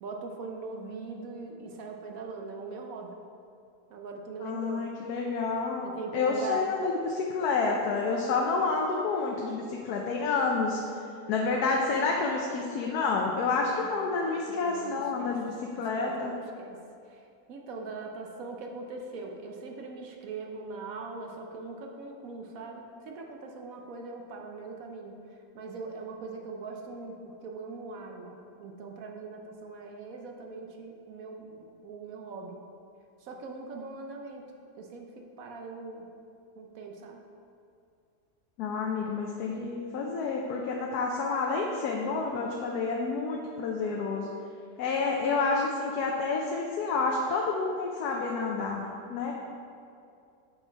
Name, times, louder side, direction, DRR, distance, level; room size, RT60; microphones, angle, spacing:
voice 1, 0.0-3.2 3.9-4.9 5.8-6.7 13.8-14.2 14.5-15.3 15.9-16.8 17.1-17.2 17.5-25.2 25.5-32.6 33.2-34.5 34.7-36.1 36.5-37.2, right 3 dB, 65° right, 2 dB, 1.1 m, -41 dB
voice 2, 4.4-5.9 6.1-10.8 11.3-16.3 38.6-44.3 44.8-48.8 49.1-49.3, left 4 dB, 75° left, 0 dB, 1.2 m, -29 dB
8.1 x 4.7 x 4.5 m, 2.5 s
omnidirectional pair, 1.7 m